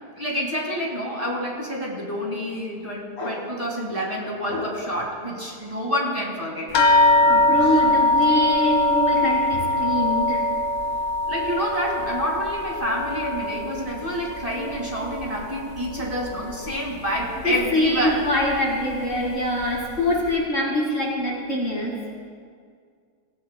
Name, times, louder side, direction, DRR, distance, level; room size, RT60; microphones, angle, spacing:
voice 1, 0.2-6.8 7.6-7.8 11.3-18.2, equal, 20° right, -3 dB, 2.1 m, -28 dB
sound 1, 6.7-15.6 15.9-16.8 17.5-17.6 18.0-18.2, left 2 dB, 60° left, 1.4 m, -22 dB
voice 2, 7.2-10.5 17.4-21.9, left 1 dB, 40° left, -2 dB, 1.6 m, -24 dB
17.0 x 16.5 x 2.2 m, 2.1 s
omnidirectional pair, 1.8 m